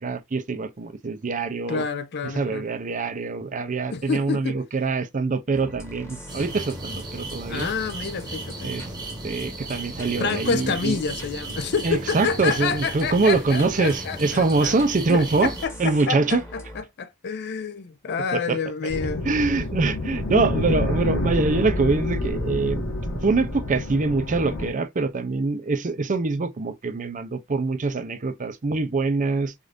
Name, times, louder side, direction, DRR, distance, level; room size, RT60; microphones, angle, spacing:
voice 1, 0.0-1.8 2.2-7.7 8.6-8.8 9.2-11.0 11.8-15.5 15.8-16.4 18.3-18.6 19.2-22.9 23.2-29.5, right 3 dB, 35° right, 0.5 m, -24 dB
voice 2, 1.7-2.6 3.9-4.6 7.5-8.7 10.2-14.8 15.0-19.2, left 5 dB, 50° left, 0.5 m, -28 dB
sound 1, 5.5-16.8, equal, 15° left, 1.2 m, -41 dB
sound 2, 6.3-15.7, right 2 dB, 20° right, 1.0 m, -36 dB
sound 3, 18.9-24.7, left 2 dB, 70° left, 1.4 m, -28 dB
4.9 x 2.5 x 2.5 m
head